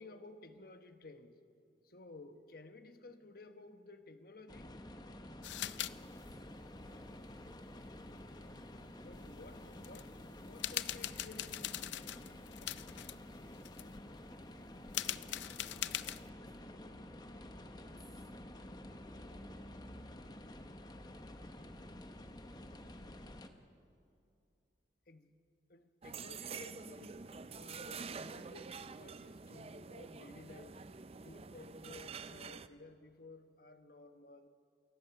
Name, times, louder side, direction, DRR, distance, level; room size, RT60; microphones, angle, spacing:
voice 1, 0.0-1.4 1.8-4.8 9.0-12.1 25.1-25.3 25.7-30.8 31.2-34.5, left 2 dB, 55° left, 8 dB, 1.2 m, -55 dB
sound 1, 4.5-23.5, left 1 dB, 25° left, 1.0 m, -50 dB
sound 2, 5.4-5.9 6.2-6.3 9.1-9.2 9.7-10.1 10.5-13.2 13.5-14.0 14.9-16.3, left 13 dB, 85° left, 0.5 m, -41 dB
voice 2, 6.0-6.5 6.8-7.1 8.8-9.0 14.3-14.4 14.8-18.3 19.1-19.7 22.3-22.9, equal, ahead, 0 dB, 3.4 m, -68 dB
sound 3, 26.0-32.7, right 5 dB, 35° right, 0.5 m, -47 dB
28.0 x 16.0 x 5.9 m, 2.5 s
head